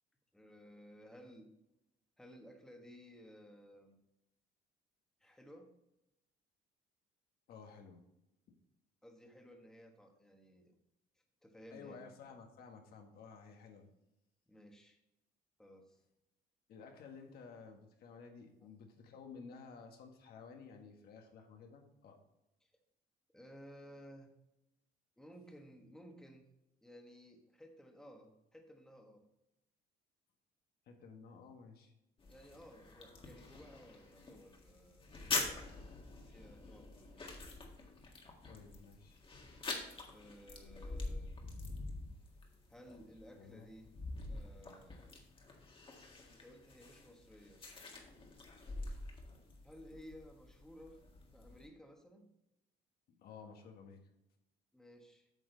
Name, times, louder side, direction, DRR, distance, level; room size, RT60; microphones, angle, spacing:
voice 1, 0.3-1.5 2.2-4.0 5.2-5.7 9.0-10.7 11.4-12.1 14.5-15.0 15.6-16.0 22.6-22.7 23.3-24.3 25.2-26.4 26.8-29.2 32.3-35.7 36.2-37.4 40.1-41.3 42.7-43.9 44.3-45.0 46.3-47.6 49.6-51.0 51.3-52.3 54.7-55.3, equal, 5° left, 2 dB, 1.3 m, -57 dB
voice 2, 7.5-8.0 11.7-13.9 16.7-22.2 30.9-31.9 38.4-39.2 43.3-43.7 53.1-54.0, left 5 dB, 70° left, 3 dB, 1.5 m, -54 dB
sound 1, 32.2-51.7, left 3 dB, 30° left, 1.7 m, -46 dB
8.9 x 6.3 x 3.9 m, 0.87 s
cardioid pair, 110°, 17 cm